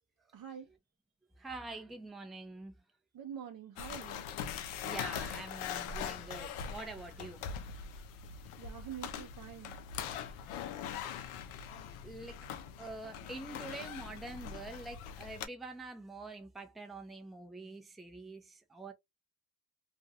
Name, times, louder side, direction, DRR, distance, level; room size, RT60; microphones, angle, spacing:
voice 1, 0.3-0.7 3.1-4.3 8.6-9.8, right 9 dB, 45° right, 0.6 m, -46 dB
voice 2, 1.4-2.7 4.8-8.1 10.3-10.4 10.6-11.1 12.0-12.5 12.8-18.9, right 3 dB, ahead, 0.5 m, -46 dB
sound 1, 3.8-15.5, left 8 dB, 80° left, 0.6 m, -42 dB
2.5 x 2.2 x 2.6 m
cardioid pair, 85°, 49 cm